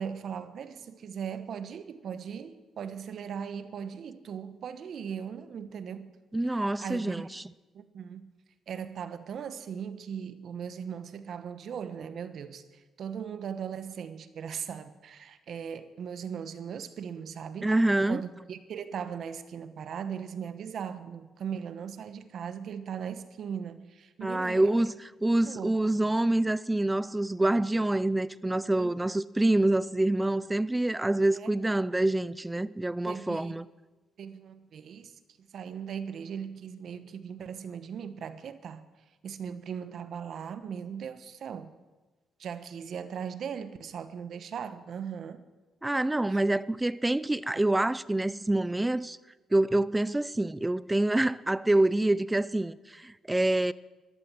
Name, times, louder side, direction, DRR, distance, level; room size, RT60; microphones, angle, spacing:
voice 1, 0.0-6.1 6.5-7.3 7.7-8.3 8.7-17.7 18.1-24.7 25.4-25.8 28.8-28.9 31.3-31.5 33.1-33.6 34.2-35.2 35.5-38.8 39.2-41.7 42.4-45.5 46.3-46.4, right 7 dB, 60° right, 1.1 m, -38 dB
voice 2, 6.3-7.4 17.6-18.2 24.2-33.7 45.8-49.2 49.5-53.7, right 1 dB, 10° right, 0.5 m, -26 dB
14.0 x 12.0 x 7.4 m
cardioid pair, 90°, 0 cm